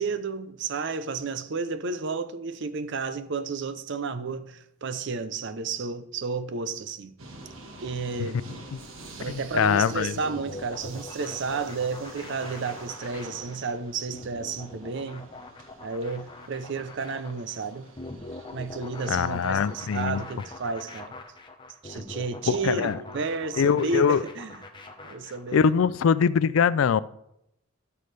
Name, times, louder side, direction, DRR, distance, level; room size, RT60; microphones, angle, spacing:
voice 1, 0.0-7.2 7.8-8.4 9.2-15.3 15.8-17.9 18.5-21.1 21.8-24.5 25.0-25.7, right 4 dB, 60° right, 0.6 m, -32 dB
sound 1, 7.2-20.7, right 2 dB, 80° right, 1.5 m, -47 dB
voice 2, 9.3-10.2 19.1-20.2 22.5-23.0 23.6-24.2 25.5-27.0, left 6 dB, 80° left, 0.4 m, -23 dB
sound 2, 10.2-25.6, left 2 dB, 25° left, 1.0 m, -43 dB
13.0 x 6.9 x 3.3 m
head